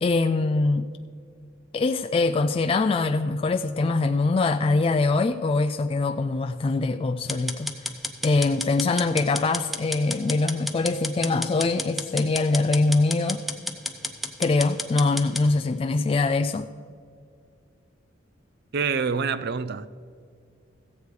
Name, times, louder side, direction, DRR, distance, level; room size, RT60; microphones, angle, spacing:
voice 1, 0.0-0.9 1.7-7.7 8.2-13.4 14.4-16.7, left 3 dB, 30° left, 0.3 m, -23 dB
sound 1, 7.3-15.5, left 1 dB, ahead, 0.7 m, -32 dB
voice 2, 18.7-19.9, right 5 dB, 55° right, 0.5 m, -26 dB
15.0 x 8.1 x 4.9 m
head